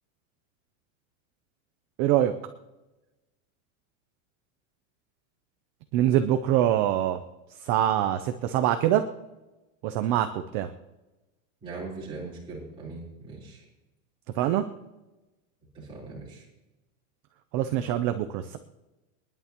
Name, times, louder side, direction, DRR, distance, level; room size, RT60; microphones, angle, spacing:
voice 1, 2.0-2.3 5.9-7.2 7.6-9.0 9.8-10.7 14.4-14.7 17.5-18.6, right 11 dB, 30° right, 8 dB, 0.5 m, -24 dB
voice 2, 11.6-13.6 15.7-16.4, right 3 dB, 10° right, -8 dB, 3.9 m, -40 dB
27.0 x 11.0 x 2.9 m, 1.0 s
supercardioid pair, 165°, 42 cm